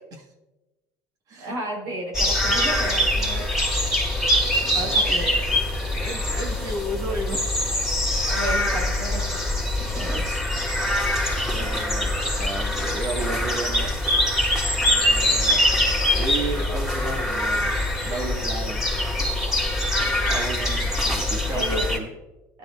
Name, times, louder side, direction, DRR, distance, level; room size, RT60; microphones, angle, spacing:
voice 1, 1.4-3.5 4.7-5.6 8.3-9.4 9.8-10.2 11.6-11.8 21.5-21.9, right 1 dB, 75° right, -2 dB, 4.4 m, -33 dB
sound 1, 2.1-22.0, left 1 dB, 5° right, 4.0 m, -23 dB
voice 2, 4.5-5.4 5.8-7.6 9.8-10.4 11.5-13.9 14.8-15.7 16.1-17.8 18.0-18.8 20.3-22.1, right 2 dB, 55° right, 2 dB, 1.9 m, -34 dB
17.5 x 11.0 x 2.5 m, 1.0 s
supercardioid pair, 95°, 7 cm